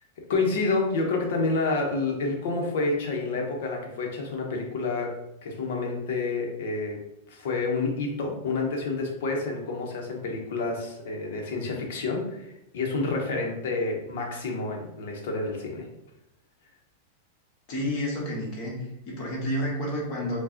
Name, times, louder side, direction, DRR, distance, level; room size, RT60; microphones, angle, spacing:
voice 1, 0.3-7.0 7.3-15.9, left 3 dB, 70° left, 1 dB, 0.9 m, -29 dB
voice 2, 17.7-20.4, equal, 40° left, -4 dB, 1.4 m, -30 dB
4.5 x 2.3 x 2.8 m, 0.85 s
supercardioid pair, 155°, 0 cm